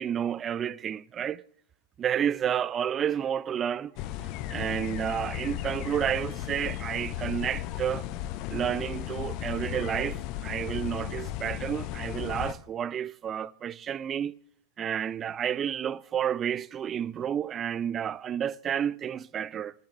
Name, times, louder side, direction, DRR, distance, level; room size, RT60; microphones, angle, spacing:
voice 1, 0.0-1.4 2.0-3.9 4.5-8.1 8.5-14.3 14.8-19.7, right 9 dB, 25° right, 0.4 m, -30 dB
sound 1, 4.0-12.5, left 13 dB, 40° left, 0.8 m, -35 dB
18.0 x 9.4 x 3.3 m
figure-of-eight pair, 90°, 0 cm